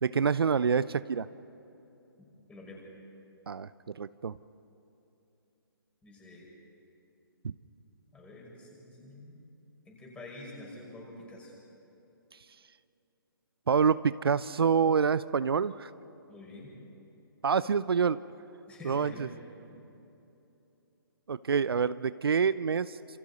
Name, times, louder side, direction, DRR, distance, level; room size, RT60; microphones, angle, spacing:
voice 1, 0.0-1.3 3.5-3.7 4.0-4.4 7.4-7.5 13.7-15.9 17.4-18.2 18.8-19.3 21.3-23.2, right 6 dB, 75° right, 16 dB, 0.6 m, -27 dB
voice 2, 2.5-2.8 6.0-6.5 8.1-9.4 9.9-11.5 16.3-16.7 18.7-19.3 19.6-19.8, left 2 dB, 10° left, -3 dB, 5.8 m, -47 dB
29.0 x 27.5 x 4.2 m, 2.9 s
hypercardioid pair, 145°, 13 cm